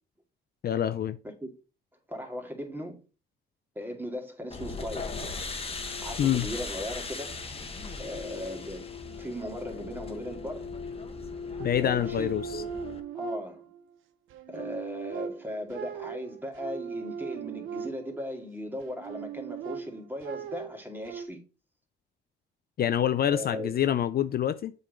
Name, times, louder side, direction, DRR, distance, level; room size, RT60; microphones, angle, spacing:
voice 1, 0.6-1.2 6.2-6.5 11.6-12.6 22.8-24.7, left 10 dB, 50° left, 0.5 m, -26 dB
voice 2, 2.1-3.0 3.8-5.1 6.0-7.4 8.0-10.7 11.8-12.7 13.1-13.6 14.5-21.4 23.3-23.7, equal, 10° right, 2.3 m, -38 dB
sound 1, 4.5-13.0, left 4 dB, 30° left, 1.3 m, -38 dB
sound 2, 11.6-13.9 14.3-18.3 18.8-21.3, right 7 dB, 85° right, 0.8 m, -39 dB
7.3 x 4.1 x 5.2 m
cardioid pair, 90°, 20 cm